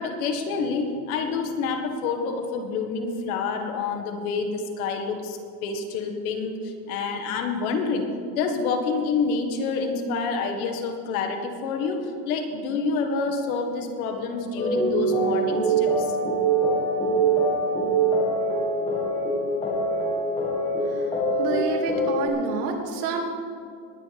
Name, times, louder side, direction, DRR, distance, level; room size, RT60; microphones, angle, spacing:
voice 1, 0.0-8.0 8.3-16.2, left 4 dB, 65° left, 5 dB, 1.9 m, -28 dB
sound 1, 14.6-22.3, right 2 dB, 10° left, 1.9 m, -24 dB
voice 2, 21.4-23.2, right 4 dB, 75° right, 1 dB, 2.5 m, -28 dB
20.5 x 9.5 x 3.6 m, 2.4 s
supercardioid pair, 145°, 46 cm